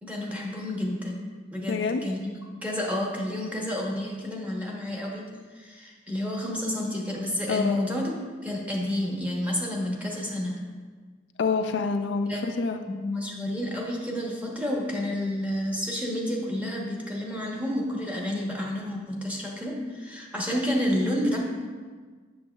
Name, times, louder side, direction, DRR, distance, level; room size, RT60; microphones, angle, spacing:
voice 1, 0.0-8.2 8.4-10.6 12.3-12.4 12.9-21.4, left 1 dB, 10° right, -2 dB, 0.9 m, -30 dB
voice 2, 1.7-2.0 7.5-7.8 11.4-12.8, left 4 dB, 70° left, 6 dB, 0.4 m, -27 dB
7.9 x 6.8 x 2.3 m, 1.5 s
head